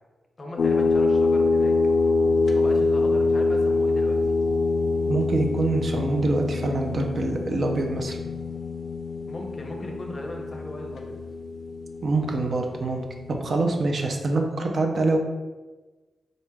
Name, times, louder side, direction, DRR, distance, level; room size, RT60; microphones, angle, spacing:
voice 1, 0.4-1.8 2.6-4.2 9.3-11.2, left 1 dB, 30° left, 1 dB, 0.6 m, -37 dB
sound 1, 0.6-13.7, left 3 dB, 75° left, 0.4 m, -25 dB
voice 2, 5.1-8.2 12.0-13.0 13.4-15.2, right 2 dB, 55° right, 3 dB, 0.5 m, -25 dB
3.9 x 3.2 x 2.2 m, 1.2 s
wide cardioid pair, 115°, 0 cm